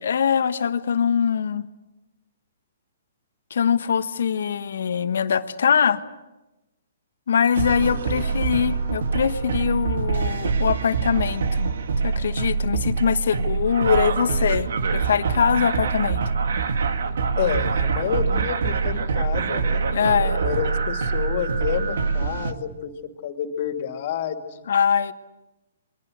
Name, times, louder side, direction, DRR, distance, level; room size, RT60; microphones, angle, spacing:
voice 1, 0.0-1.7 3.5-6.0 7.3-11.7 12.0-16.2 19.9-20.4 24.7-25.1, left 7 dB, 70° left, 11 dB, 1.3 m, -22 dB
sound 1, 7.6-22.5, right 5 dB, 70° right, 1.8 m, -24 dB
voice 2, 7.8-8.2 17.4-19.8 20.4-22.9 23.2-24.7, left 8 dB, 50° left, 6 dB, 2.6 m, -29 dB
28.5 x 22.5 x 6.6 m, 1.0 s
hypercardioid pair, 140°, 0 cm